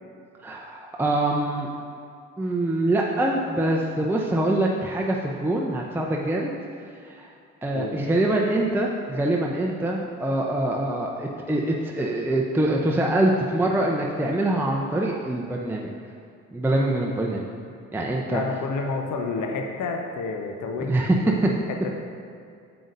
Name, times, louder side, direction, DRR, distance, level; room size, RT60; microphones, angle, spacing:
voice 1, 0.4-1.7 2.4-6.5 7.1-7.3 7.6-15.9 16.5-17.5 17.9-18.4 20.9-21.2, right 1 dB, 5° right, -1 dB, 0.7 m, -24 dB
voice 2, 7.7-8.1 18.3-21.6, left 4 dB, 50° left, 4 dB, 0.9 m, -30 dB
8.8 x 6.9 x 2.6 m, 2.4 s
figure-of-eight pair, 45°, 39 cm